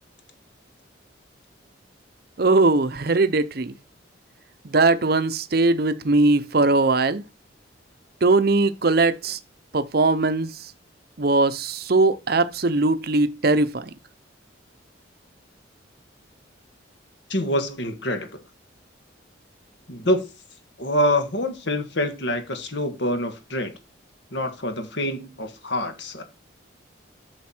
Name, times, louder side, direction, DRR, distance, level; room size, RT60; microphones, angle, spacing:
voice 1, 2.4-3.7 4.6-7.2 8.2-9.4 9.7-10.5 11.2-13.8, right 3 dB, 50° right, 0.7 m, -20 dB
voice 2, 17.3-18.4 19.9-20.2 20.8-23.7 24.3-26.2, left 1 dB, 65° left, 1.7 m, -26 dB
9.5 x 6.7 x 4.4 m
head